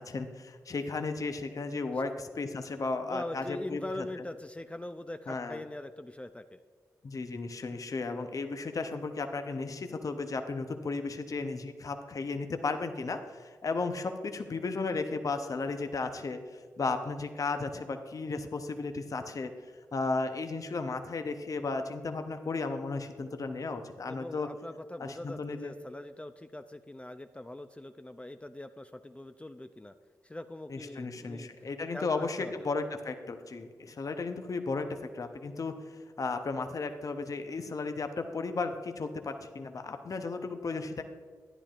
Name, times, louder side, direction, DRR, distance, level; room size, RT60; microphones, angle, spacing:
voice 1, 0.0-4.1 5.3-5.6 7.0-19.5 19.9-24.5 25.0-25.7 30.7-41.0, left 3 dB, 50° left, 7 dB, 0.7 m, -34 dB
voice 2, 3.0-6.6 24.0-29.9 30.2-31.5 31.9-32.7, left 1 dB, 15° left, 9 dB, 0.4 m, -42 dB
11.0 x 10.0 x 2.4 m, 1.5 s
supercardioid pair, 40°, 7 cm